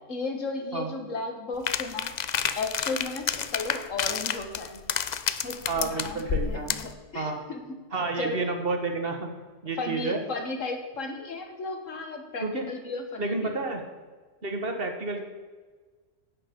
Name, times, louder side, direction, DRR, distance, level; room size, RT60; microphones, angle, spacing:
voice 1, 0.1-2.2 2.6-4.8 5.4-7.8 8.2-8.5 9.8-13.5, left 3 dB, 90° left, 4 dB, 1.9 m, -35 dB
sound 1, 1.7-6.9, left 8 dB, 55° left, 0.5 m, -30 dB
voice 2, 5.7-6.7 7.1-7.4 7.9-9.3 9.6-10.2 12.4-12.7 13.2-13.8 14.4-15.3, right 3 dB, 50° right, 4 dB, 1.5 m, -30 dB
10.5 x 8.6 x 5.2 m, 1.4 s
omnidirectional pair, 1.3 m